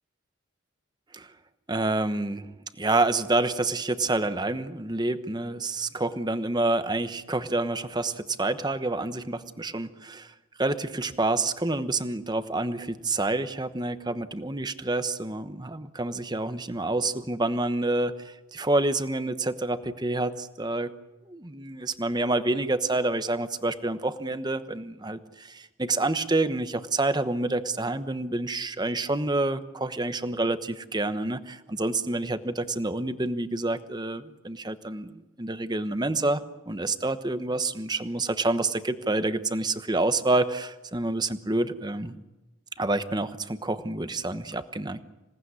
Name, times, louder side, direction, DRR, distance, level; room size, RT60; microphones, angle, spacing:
voice 1, 1.7-20.9 21.3-42.2 42.8-45.0, right 2 dB, 20° right, 11 dB, 1.0 m, -28 dB
27.0 x 18.0 x 9.7 m, 1.1 s
head